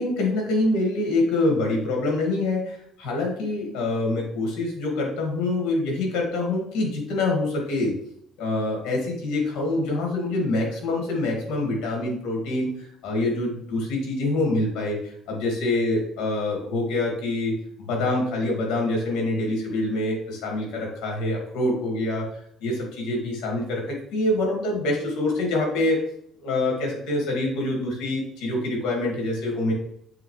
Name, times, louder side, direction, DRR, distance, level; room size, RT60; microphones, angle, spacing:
voice 1, 0.0-7.9 8.4-17.5 17.8-22.3 22.6-26.0 26.4-29.7, left 2 dB, 80° left, 0 dB, 2.3 m, -25 dB
7.6 x 3.9 x 3.3 m, 0.70 s
cardioid pair, 110°, 0 cm